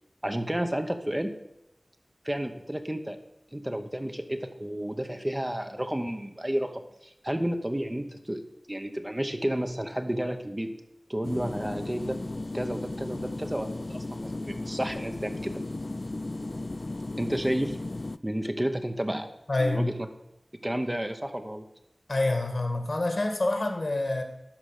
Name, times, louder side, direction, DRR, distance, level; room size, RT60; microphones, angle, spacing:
voice 1, 0.2-1.3 2.2-3.2 3.5-6.7 7.0-8.4 8.7-10.7 11.1-12.2 12.5-15.6 17.2-17.8 18.2-19.3 19.6-19.9 20.6-21.6, right 1 dB, 20° right, 6 dB, 0.9 m, -31 dB
sound 1, 11.2-18.2, left 2 dB, 50° left, 0.3 m, -35 dB
voice 2, 19.5-19.9 22.1-24.2, left 2 dB, 65° left, 5 dB, 1.7 m, -27 dB
12.0 x 5.0 x 6.6 m, 0.85 s
wide cardioid pair, 60°, 0 cm